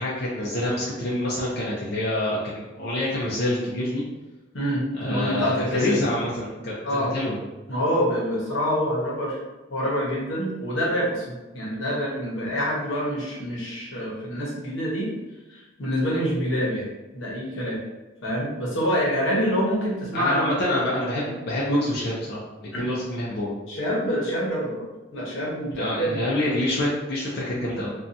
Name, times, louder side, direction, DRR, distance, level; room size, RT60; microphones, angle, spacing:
voice 1, 0.0-4.0 4.9-7.4 20.1-22.4 22.8-23.5 25.7-27.9, left 1 dB, 55° left, -6 dB, 0.5 m, -26 dB
voice 2, 4.5-6.0 6.8-7.1 7.7-9.4 9.7-15.1 15.5-17.8 18.2-20.5 22.7-22.8 23.7-24.8 25.1-26.2, equal, 80° left, -5 dB, 0.9 m, -26 dB
2.6 x 2.2 x 2.6 m, 1.1 s
head